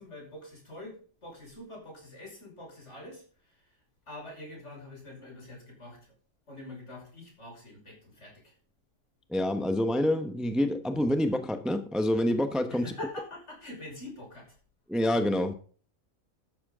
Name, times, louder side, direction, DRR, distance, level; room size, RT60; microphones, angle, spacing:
voice 1, 0.0-3.7 4.1-6.0 6.5-8.5 12.7-14.6, left 2 dB, 60° left, 6.1 m, -45 dB
voice 2, 9.3-12.9 14.9-15.5, left 1 dB, ahead, 1.0 m, -27 dB
13.0 x 10.5 x 3.7 m
omnidirectional pair, 1.3 m